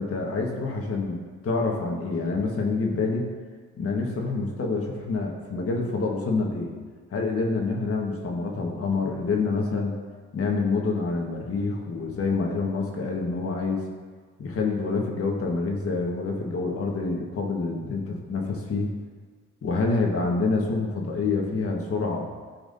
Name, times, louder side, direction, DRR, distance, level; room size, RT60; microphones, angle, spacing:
voice 1, 0.0-3.3 3.8-6.7 7.1-9.9 10.3-13.8 14.4-18.9 19.6-22.3, left 3 dB, 50° left, 0 dB, 1.5 m, -27 dB
14.5 x 4.8 x 2.7 m, 1.5 s
cardioid pair, 90°, 30 cm